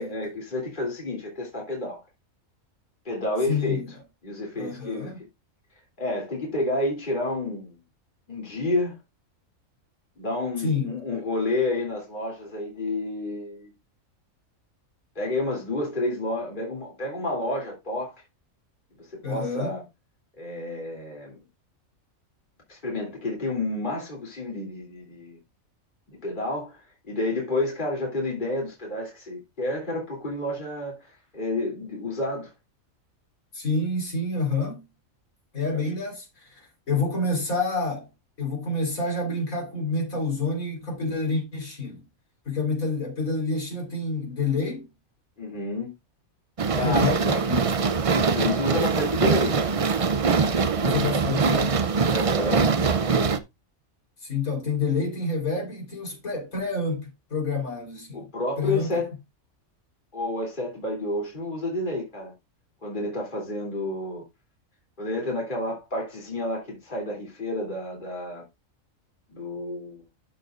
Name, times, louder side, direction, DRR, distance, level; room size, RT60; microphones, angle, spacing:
voice 1, 0.0-2.0 3.0-3.8 4.2-5.1 6.0-7.8 8.3-8.9 10.2-13.7 15.1-18.1 19.1-19.8 20.4-21.4 22.7-25.4 26.1-32.5 35.7-35.8 45.4-45.9 46.8-47.3 48.1-49.8 52.1-52.8 58.1-59.1 60.1-62.3 62.8-64.2 65.0-68.4 69.3-70.0, left 2 dB, 35° left, 3.2 m, -30 dB
voice 2, 3.5-3.9 4.5-5.2 10.6-11.0 19.2-19.8 33.5-34.9 35.5-38.1 38.4-42.0 42.5-44.9 46.7-47.7 50.8-51.8 54.2-58.3 58.6-59.0, left 3 dB, 80° left, 4.4 m, -28 dB
sound 1, 46.6-53.4, right 5 dB, 45° right, 0.4 m, -23 dB
12.5 x 6.6 x 2.5 m
omnidirectional pair, 1.4 m